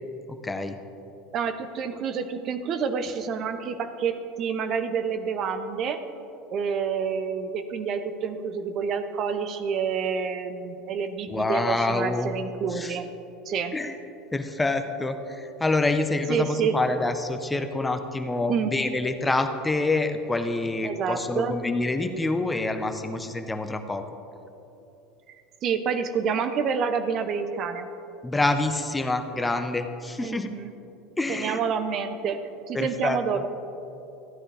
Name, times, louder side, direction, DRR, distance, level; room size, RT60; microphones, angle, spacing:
voice 1, 0.3-0.8 11.3-12.3 12.7-13.0 13.7-14.0 14.3-24.0 28.2-30.5 31.2-31.6 32.7-33.4, left 2 dB, 15° left, 8 dB, 0.7 m, -27 dB
voice 2, 1.3-6.0 6.5-13.1 13.5-13.7 16.3-16.8 18.5-18.7 20.8-21.6 25.6-27.9 30.2-30.7 31.3-33.5, right 6 dB, 50° right, 9 dB, 0.7 m, -28 dB
14.5 x 9.8 x 3.4 m, 2.9 s
hypercardioid pair, 85°, 0 cm